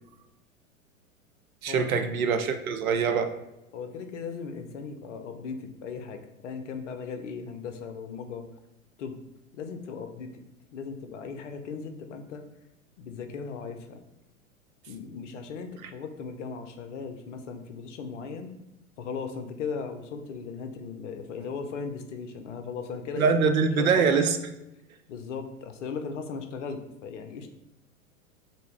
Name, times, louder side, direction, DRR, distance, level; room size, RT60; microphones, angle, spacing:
voice 1, 1.6-3.3 23.2-24.4, right 5 dB, 75° right, 8 dB, 0.5 m, -23 dB
voice 2, 3.7-8.4 9.0-9.2 9.5-10.4 10.7-12.4 13.0-14.0 14.9-18.5 19.0-24.1 25.1-27.5, left 5 dB, 60° left, 7 dB, 0.6 m, -37 dB
3.4 x 2.8 x 3.2 m, 0.91 s
figure-of-eight pair, 95°, 42 cm